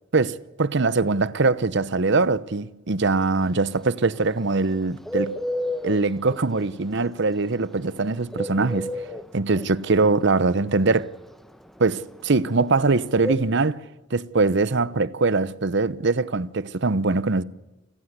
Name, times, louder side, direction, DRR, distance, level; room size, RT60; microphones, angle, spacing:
voice 1, 0.1-5.3 5.8-8.9 9.3-11.1 11.8-13.8 14.1-17.4, right 3 dB, 60° right, 0.8 m, -22 dB
Bird, 3.4-13.3, left 1 dB, ahead, 1.1 m, -31 dB
28.5 x 16.0 x 8.1 m
head